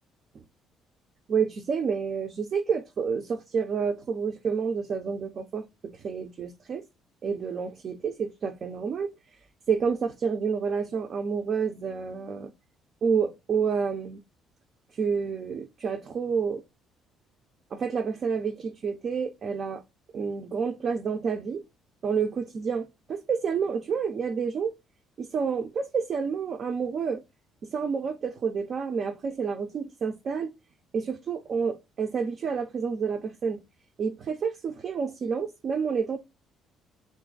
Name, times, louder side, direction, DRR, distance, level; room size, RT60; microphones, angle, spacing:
voice 1, 1.3-6.8 7.2-9.1 9.7-12.5 13.0-14.2 14.9-16.6 17.7-19.8 20.1-21.6 22.0-24.7 25.2-27.2 27.6-30.5 30.9-33.6 34.0-36.2, right 6 dB, 45° right, 0.5 m, -29 dB
3.9 x 2.4 x 3.8 m
cardioid pair, 115°, 0 cm